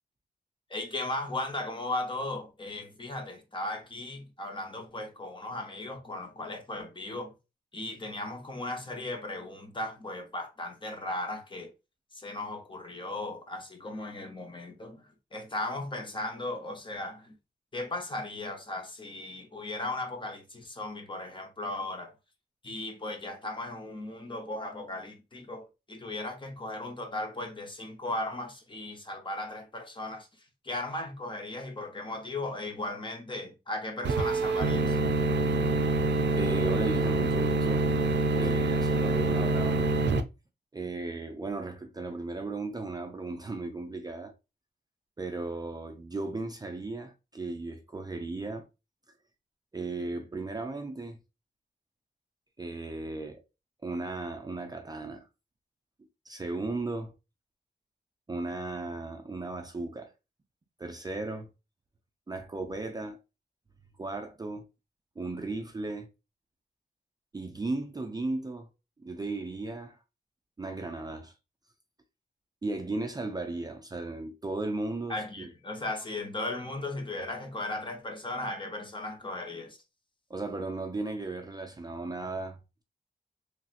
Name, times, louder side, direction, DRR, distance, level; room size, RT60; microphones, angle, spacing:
voice 1, 0.7-7.3 7.7-11.7 12.1-17.3 17.7-22.1 22.6-35.0 75.1-79.8, left 2 dB, 30° left, 0.7 m, -37 dB
sound 1, 34.0-40.2, right 2 dB, 85° right, 0.4 m, -26 dB
voice 2, 36.3-37.9 38.4-40.0 40.7-44.3 45.2-48.7 49.7-51.2 52.6-53.4 53.8-55.3 56.3-57.1 58.3-60.1 60.8-61.5 62.3-63.2 64.0-64.7 65.2-66.1 67.3-68.7 69.0-70.0 70.6-71.3 72.6-75.5 80.3-82.8, right 2 dB, 20° right, 0.4 m, -36 dB
3.2 x 2.8 x 2.4 m
wide cardioid pair, 125°, 18 cm